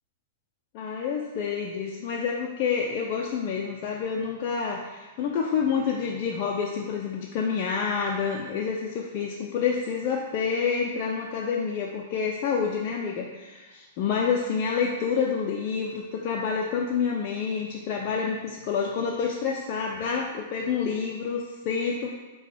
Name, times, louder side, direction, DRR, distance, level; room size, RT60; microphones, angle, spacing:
voice 1, 0.7-22.1, left 6 dB, 40° left, -1 dB, 0.4 m, -28 dB
5.0 x 2.2 x 3.3 m, 1.2 s
hypercardioid pair, 150°, 0 cm